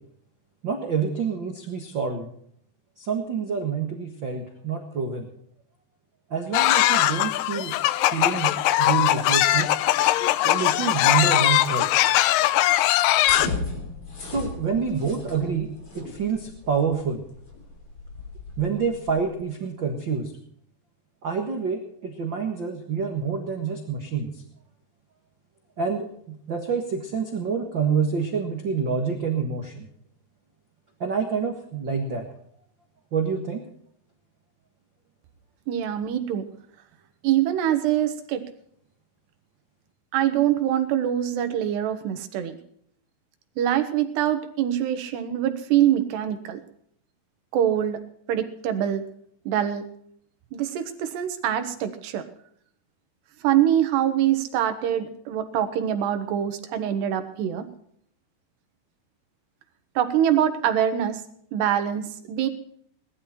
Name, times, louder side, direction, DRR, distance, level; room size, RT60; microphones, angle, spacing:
voice 1, 0.6-2.3 3.0-5.3 6.3-7.7 8.1-9.7 10.4-11.9 14.2-15.7 15.9-17.2 18.6-20.3 21.2-24.4 25.8-29.9 31.0-32.3 33.1-33.6, right 6 dB, 70° right, 4 dB, 1.1 m, -27 dB
sound 1, 6.5-13.5, left 15 dB, 85° left, 1.9 m, -20 dB
sound 2, 13.2-19.3, left 3 dB, 35° left, 3.5 m, -35 dB
voice 2, 35.7-36.5 37.2-38.4 40.1-42.6 43.6-46.6 47.5-48.0 48.3-49.0 49.5-49.9 50.5-52.3 53.4-57.7 60.0-61.2 61.5-62.5, right 10 dB, 90° right, 9 dB, 3.5 m, -24 dB
19.0 x 12.0 x 4.3 m, 0.65 s
omnidirectional pair, 4.7 m